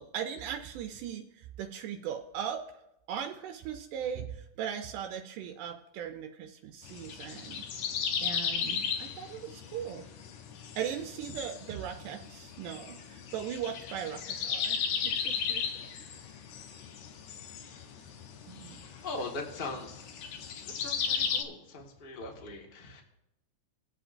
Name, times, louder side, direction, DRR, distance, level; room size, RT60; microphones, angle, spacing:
voice 1, 0.0-2.6 3.1-7.6 8.2-10.1 10.8-15.6 18.5-18.8, right 9 dB, 85° right, 5 dB, 2.2 m, -39 dB
sound 1, 6.8-21.4, left 7 dB, 75° left, 2.1 m, -36 dB
voice 2, 19.0-20.1 20.8-23.0, left 2 dB, 30° left, 0 dB, 0.9 m, -40 dB
21.0 x 7.9 x 2.6 m, 0.86 s
omnidirectional pair, 3.7 m